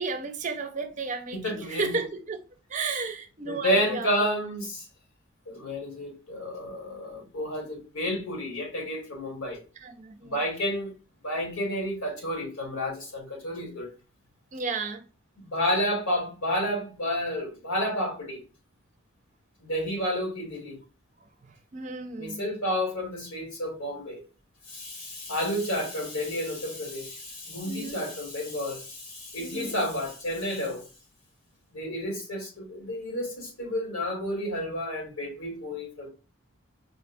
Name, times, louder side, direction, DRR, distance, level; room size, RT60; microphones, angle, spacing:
voice 1, 0.0-2.4 2.7-4.3 9.8-10.4 14.5-15.0 21.4-22.4 27.6-28.0 29.4-29.7, right 4 dB, 35° right, 0.5 m, -33 dB
voice 2, 1.3-2.0 3.4-4.9 5.4-9.6 10.2-10.9 11.2-13.9 15.5-18.4 19.6-20.8 22.2-24.2 24.7-30.8 31.7-36.1, equal, 90° left, 1.7 m, -30 dB
4.9 x 2.2 x 2.6 m
head